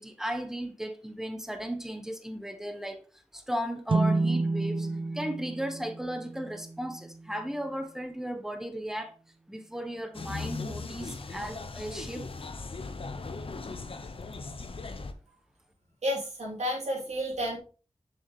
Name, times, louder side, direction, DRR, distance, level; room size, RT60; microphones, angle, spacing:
voice 1, 0.0-9.1 9.5-12.3, equal, 5° right, 1.1 m, -36 dB
sound 1, 3.9-7.5, right 3 dB, 45° right, 0.7 m, -30 dB
sound 2, 10.1-15.1, left 3 dB, 55° left, 0.8 m, -38 dB
voice 2, 16.0-17.6, equal, 85° right, 3.5 m, -31 dB
6.8 x 6.3 x 3.2 m
wide cardioid pair, 65°, 11 cm